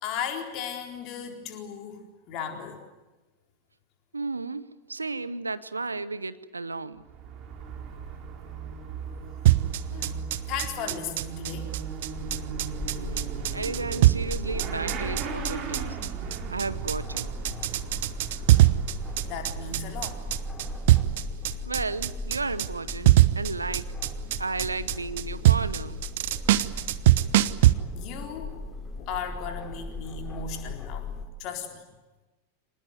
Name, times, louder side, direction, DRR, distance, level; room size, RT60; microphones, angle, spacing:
voice 1, 0.0-2.0 2.3-2.8 9.9-10.2 10.5-11.7 18.2-18.5 19.2-20.3 27.9-28.6 29.0-31.1 31.4-31.8, left 7 dB, 40° left, 3 dB, 4.1 m, -36 dB
voice 2, 4.1-7.0 12.9-16.0 16.5-17.3 21.7-23.9 24.4-26.0, right 3 dB, 80° right, 16 dB, 0.9 m, -33 dB
Motorcycle / Accelerating revving vroom, 7.0-20.8, right 7 dB, 35° right, 4.3 m, -37 dB
sound 1, 9.5-27.7, right 15 dB, 55° right, 0.9 m, -22 dB
sound 2, 12.1-31.3, left 2 dB, 20° left, 3.6 m, -38 dB
25.5 x 19.5 x 9.4 m, 1.1 s
figure-of-eight pair, 90°, 0 cm